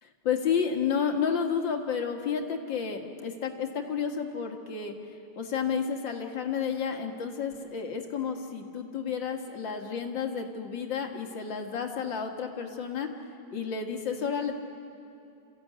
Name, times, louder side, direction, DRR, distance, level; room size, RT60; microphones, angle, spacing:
voice 1, 0.0-4.9 5.4-13.1 13.5-14.6, left 6 dB, 80° left, 3 dB, 2.4 m, -31 dB
28.5 x 15.0 x 9.3 m, 2.7 s
omnidirectional pair, 2.0 m